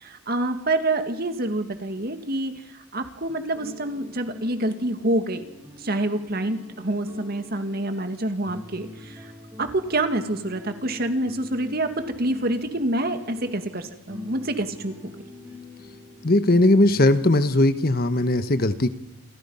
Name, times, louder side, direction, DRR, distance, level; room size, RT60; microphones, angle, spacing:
voice 1, 0.0-2.6 2.9-5.4 5.8-9.3 9.6-14.9, right 1 dB, 45° right, 8 dB, 2.2 m, -27 dB
sound 1, 3.3-17.0, left 2 dB, 15° right, 7.2 m, -44 dB
voice 2, 16.2-18.9, left 1 dB, 45° left, 11 dB, 1.3 m, -19 dB
28.5 x 24.5 x 5.7 m, 0.99 s
head